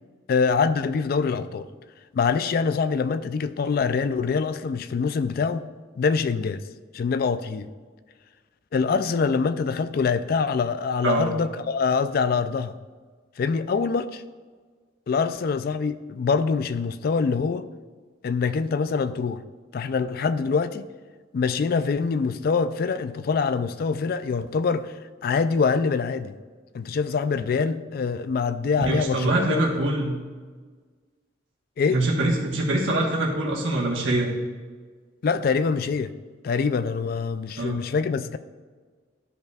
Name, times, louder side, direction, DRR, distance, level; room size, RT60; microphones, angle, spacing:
voice 1, 0.3-1.7 2.1-5.7 6.0-6.6 6.9-7.7 8.7-12.7 13.4-14.2 15.1-17.7 18.2-19.4 19.7-20.9 21.3-25.0 25.2-26.4 26.7-29.6 31.8-32.0 35.2-36.1 36.4-38.4, left 5 dB, 50° left, 12 dB, 0.3 m, -24 dB
voice 2, 28.8-30.1 31.9-34.3 37.6-37.8, right 2 dB, 80° right, -3 dB, 1.2 m, -24 dB
12.0 x 5.3 x 2.4 m, 1.5 s
head